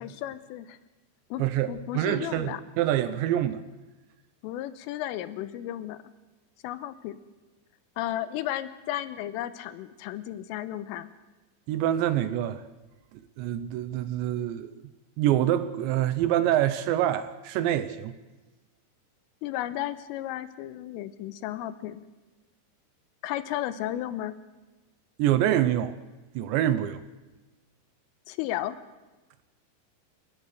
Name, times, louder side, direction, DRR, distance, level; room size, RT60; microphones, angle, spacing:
voice 1, 0.0-0.8 1.3-1.4 1.7-2.6 4.4-6.1 6.6-7.2 8.0-11.1 19.4-22.1 23.2-24.4 28.3-28.8, left 13 dB, 90° left, 3.6 m, -34 dB
voice 2, 1.4-3.6 11.7-12.6 13.4-14.7 15.2-18.2 25.2-26.0 26.4-27.0, right 12 dB, 75° right, 2.9 m, -26 dB
29.5 x 16.5 x 6.5 m
omnidirectional pair, 5.7 m